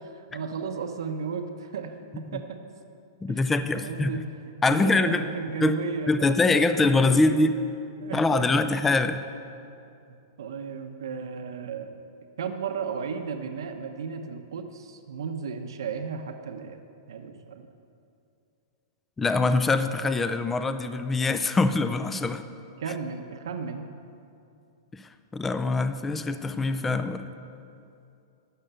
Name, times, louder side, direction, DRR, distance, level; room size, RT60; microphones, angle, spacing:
voice 1, 0.0-2.6 3.3-3.5 3.7-7.4 8.0-8.5 10.4-12.0 12.4-16.8 17.1-17.7 22.8-23.9, right 5 dB, 80° right, 5 dB, 1.0 m, -34 dB
voice 2, 3.2-4.1 4.6-5.2 5.6-5.8 6.1-7.5 8.1-9.2 19.2-22.4 24.9-27.3, left 3 dB, 5° left, 10 dB, 0.3 m, -24 dB
12.5 x 6.6 x 8.9 m, 2.6 s
supercardioid pair, 175°, 2 cm